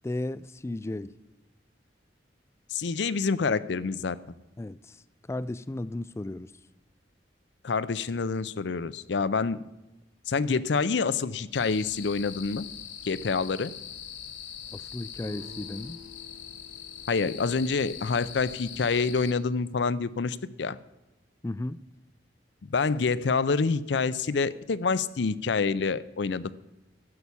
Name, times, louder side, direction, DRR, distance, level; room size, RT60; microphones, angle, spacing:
voice 1, 0.0-1.1 4.6-5.0 5.3-6.5 14.7-16.0 21.4-21.8, left 2 dB, 15° left, 17 dB, 0.3 m, -34 dB
voice 2, 2.7-4.2 7.6-9.6 10.3-12.6 13.1-13.7 17.1-20.8 22.7-26.5, left 4 dB, 70° left, 16 dB, 0.5 m, -27 dB
sound 1, 11.5-19.3, left 8 dB, 85° left, 1.2 m, -42 dB
Guitar, 15.2-20.0, left 2 dB, 30° right, 0.9 m, -52 dB
12.5 x 5.9 x 8.3 m, 1.0 s
head